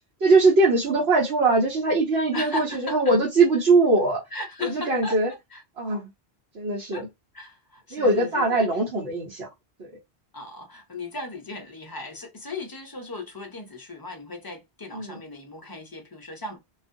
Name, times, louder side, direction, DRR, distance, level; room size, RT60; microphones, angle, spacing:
voice 1, 0.2-4.2 4.6-5.3 5.8-6.1 6.5-7.1 7.9-9.5 9.8-9.9 14.9-15.2, right 3 dB, 90° right, 1.2 m, -21 dB
voice 2, 2.3-3.1 4.3-5.6 6.9-7.0 7.3-8.7 10.3-16.6, left 3 dB, 30° left, 0.5 m, -37 dB
2.4 x 2.3 x 2.6 m
omnidirectional pair, 1.1 m